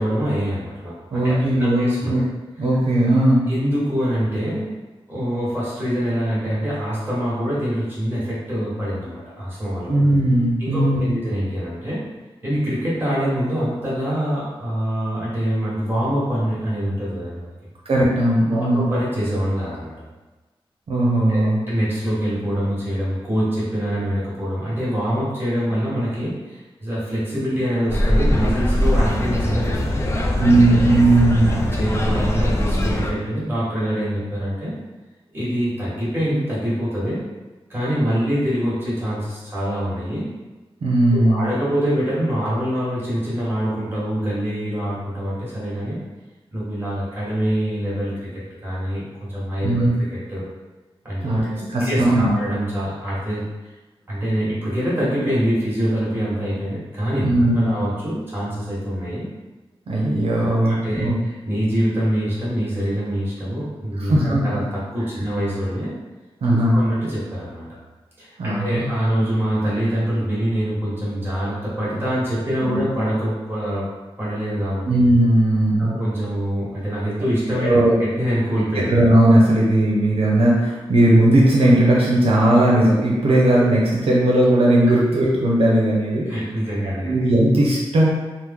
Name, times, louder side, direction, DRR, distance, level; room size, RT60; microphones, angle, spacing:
voice 1, 0.0-2.2 3.5-4.7 5.1-10.0 10.6-12.0 12.4-17.5 18.5-19.9 21.3-30.4 31.5-34.7 35.3-37.2 37.7-40.2 41.1-46.0 46.5-48.1 48.6-50.4 51.0-53.4 54.1-57.3 57.5-59.3 60.6-65.9 66.7-67.7 68.2-73.9 74.2-74.9 75.8-78.8 86.3-87.3, equal, 20° right, -9 dB, 1.3 m, -25 dB
voice 2, 1.1-2.2 2.6-3.4 9.9-11.2 17.9-18.9 20.9-21.6 28.4-28.5 30.4-31.6 40.8-41.4 49.6-49.9 51.2-51.5 51.7-52.4 57.2-57.8 59.9-61.2 64.0-64.6 66.4-66.8 68.4-68.9 72.6-72.8 74.9-76.0 77.6-78.0 78.7-86.3 87.0-88.1, right 1 dB, 80° right, -5 dB, 0.6 m, -17 dB
sound 1, 27.9-33.1, left 1 dB, 30° left, 0.3 m, -21 dB
3.0 x 2.0 x 3.5 m, 1.2 s
wide cardioid pair, 125°, 10 cm